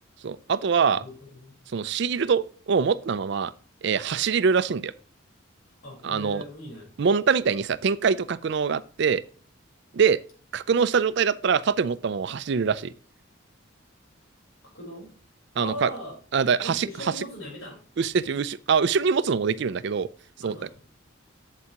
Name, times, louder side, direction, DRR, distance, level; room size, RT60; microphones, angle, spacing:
voice 1, 0.2-1.0 1.7-3.5 3.8-4.9 6.0-6.4 7.0-9.2 9.9-10.2 10.5-12.9 15.6-15.9 16.3-17.1 18.0-20.1 20.4-20.6, right 6 dB, 55° right, 0.4 m, -24 dB
voice 2, 0.8-1.5 5.8-6.9 14.7-15.1 15.6-16.2 16.6-17.9 20.4-20.8, equal, 80° left, 4.2 m, -39 dB
8.1 x 7.6 x 2.9 m
head